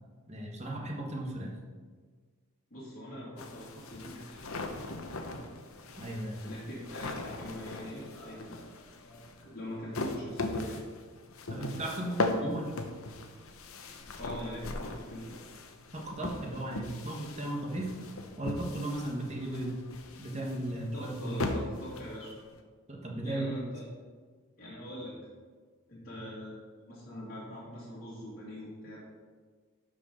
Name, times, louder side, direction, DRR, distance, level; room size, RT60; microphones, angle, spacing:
voice 1, 0.3-1.6 6.0-6.6 11.5-12.7 15.9-17.9 18.4-19.8 20.2-21.4 22.9-23.7, right 1 dB, 30° right, 0 dB, 1.3 m, -36 dB
voice 2, 2.7-4.4 5.2-5.4 6.4-10.8 14.1-15.3 20.7-22.3 23.0-23.9 24.6-25.2 25.9-26.6 26.9-29.2, equal, 40° left, -10 dB, 2.2 m, -43 dB
sound 1, 3.4-22.6, left 2 dB, 75° left, 0.8 m, -39 dB
12.0 x 5.1 x 4.4 m, 1.5 s
head